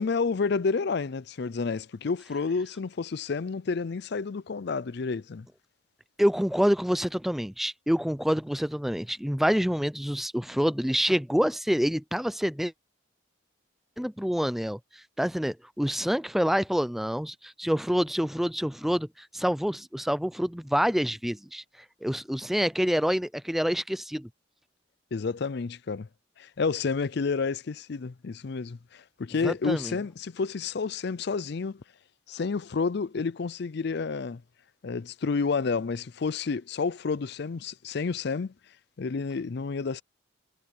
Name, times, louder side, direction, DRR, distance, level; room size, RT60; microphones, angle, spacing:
voice 1, 0.0-5.5 25.1-26.1 26.4-31.8 32.3-34.4 34.8-38.5 39.0-40.0, left 4 dB, 55° left, 0.5 m, -30 dB
voice 2, 6.2-12.7 14.0-21.6 22.0-24.3 29.4-30.0, equal, ahead, 0.4 m, -27 dB
head